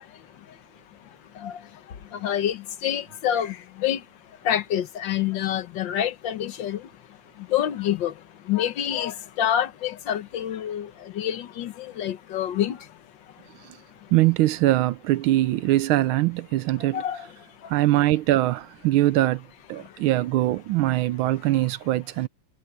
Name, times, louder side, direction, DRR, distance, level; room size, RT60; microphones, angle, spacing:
voice 1, 0.1-14.1 16.8-17.7 19.8-20.0, left 10 dB, 65° left, 1.7 m, -29 dB
voice 2, 14.1-17.0 17.7-19.4 19.7-22.3, right 15 dB, 80° right, 1.4 m, -22 dB
omnidirectional pair, 2.3 m